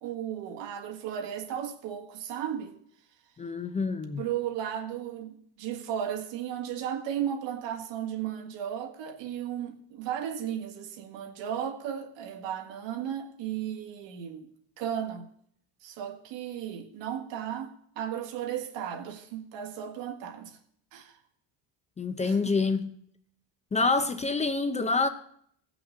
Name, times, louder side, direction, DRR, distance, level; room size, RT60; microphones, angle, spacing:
voice 1, 0.0-2.7 4.2-14.5 14.8-15.2 15.8-20.6 20.9-21.2 22.2-22.5, right 9 dB, 80° right, 1.7 m, -35 dB
voice 2, 3.4-4.3 22.0-22.9 23.7-25.1, left 3 dB, 15° left, 0.5 m, -27 dB
16.0 x 6.0 x 6.5 m
cardioid pair, 145°, 43 cm